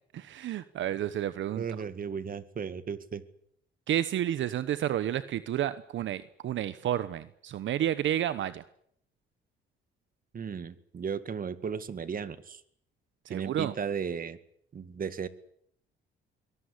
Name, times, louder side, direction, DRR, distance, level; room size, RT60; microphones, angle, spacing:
voice 1, 0.1-1.6 3.9-8.6 13.3-13.7, right 11 dB, 70° right, 14 dB, 1.1 m, -31 dB
voice 2, 1.6-3.2 10.3-12.6 13.3-14.4 14.7-15.3, right 6 dB, 45° right, 14 dB, 2.0 m, -35 dB
23.0 x 18.5 x 9.9 m, 0.69 s
cardioid pair, 90°, 20 cm